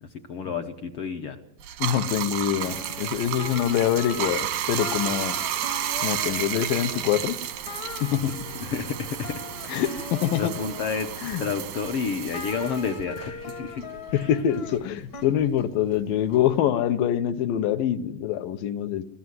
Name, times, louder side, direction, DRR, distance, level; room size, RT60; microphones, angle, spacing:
voice 1, 0.0-1.4 8.6-9.4 9.8-9.9 10.4-13.8 14.1-14.3, left 5 dB, 65° left, 6 dB, 1.4 m, -30 dB
Bathtub (filling or washing), 1.6-14.4 14.7-16.6, right 11 dB, 85° right, 3.3 m, -32 dB
voice 2, 1.8-5.4 6.0-7.4 8.0-8.3 9.7-10.5 11.2-11.4 14.1-19.0, left 10 dB, 80° left, 10 dB, 2.7 m, -25 dB
sound 1, 2.6-4.5 4.8-7.1 7.6-11.5 12.0-15.2, left 5 dB, 45° left, 1.2 m, -40 dB
22.5 x 15.0 x 9.6 m, 0.80 s
omnidirectional pair, 3.9 m